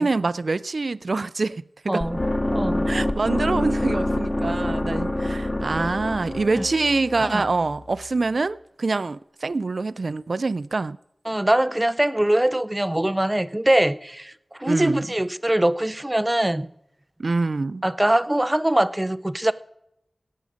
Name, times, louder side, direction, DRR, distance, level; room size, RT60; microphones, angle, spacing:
voice 1, 0.0-2.0 2.9-11.0 14.7-15.1 17.2-17.8, right 3 dB, 65° right, 0.4 m, -25 dB
voice 2, 1.9-2.2 2.5-2.8 6.6-6.7 7.2-7.4 11.3-16.7 17.8-19.5, right 1 dB, 15° right, 0.5 m, -22 dB
sound 1, 2.0-8.1, left 1 dB, 25° left, 0.8 m, -26 dB
18.0 x 7.5 x 5.1 m
wide cardioid pair, 70°, 0 cm